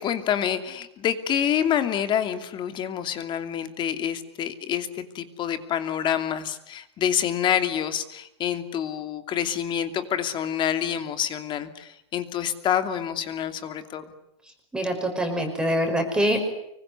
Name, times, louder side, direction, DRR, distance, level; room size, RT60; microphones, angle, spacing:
voice 1, 0.0-14.0, left 9 dB, 30° left, 9 dB, 2.8 m, -27 dB
voice 2, 14.7-16.5, equal, 5° right, 3 dB, 5.6 m, -24 dB
25.5 x 24.0 x 9.7 m, 0.82 s
supercardioid pair, 140°, 17 cm